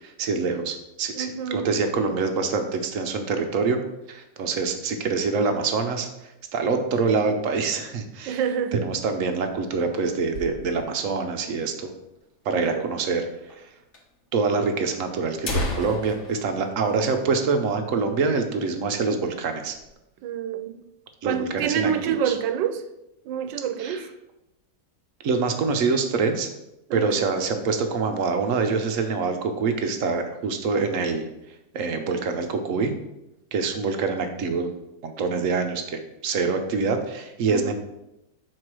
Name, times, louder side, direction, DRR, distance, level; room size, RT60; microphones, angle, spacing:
voice 1, 0.0-3.8 4.1-6.1 6.5-8.4 8.8-11.9 12.4-13.3 14.3-19.8 21.2-22.4 23.8-24.1 25.2-26.5 26.9-31.3 31.7-32.9 33.5-34.7 35.0-37.7, right 4 dB, 60° right, 0.9 m, -25 dB
voice 2, 1.1-1.7 8.3-8.8 12.5-12.9 20.2-20.8 21.2-22.8 23.3-24.0 26.9-27.3 37.5-37.7, right 8 dB, 85° right, 1.3 m, -27 dB
sound 1, 9.3-11.1 11.4-11.5 11.7-11.8 12.5-12.6 13.5-13.6 13.9-14.0 14.8-14.9 15.2-17.8 18.1-18.3 18.7-18.9 19.4-19.9, left 2 dB, 45° left, 1.2 m, -34 dB
4.8 x 4.4 x 6.0 m
omnidirectional pair, 1.9 m